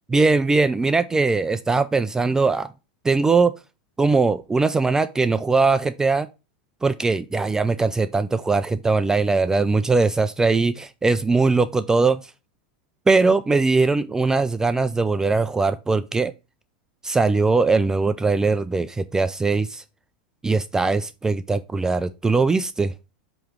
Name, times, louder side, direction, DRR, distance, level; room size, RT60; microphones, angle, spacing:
voice 1, 0.1-2.7 3.0-3.5 4.0-6.3 6.8-12.2 13.1-16.3 17.0-19.8 20.4-22.9, right 3 dB, 10° right, 0.3 m, -20 dB
8.4 x 3.1 x 4.5 m
hypercardioid pair, 115°, 5 cm